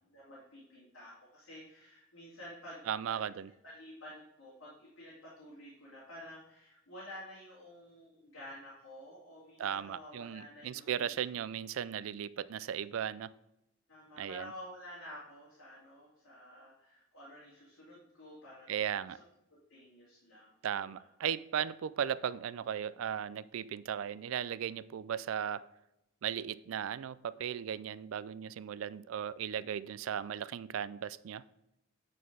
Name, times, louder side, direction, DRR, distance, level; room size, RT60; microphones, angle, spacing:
voice 1, 0.1-3.3 3.6-11.1 13.9-18.9 19.5-20.5 20.8-21.1, equal, 75° left, -7 dB, 2.6 m, -51 dB
voice 2, 2.9-3.5 9.6-13.3 14.2-14.5 18.7-19.2 20.6-25.7 26.2-31.4, right 8 dB, 70° right, 18 dB, 0.3 m, -36 dB
9.1 x 4.4 x 4.6 m, 0.85 s
head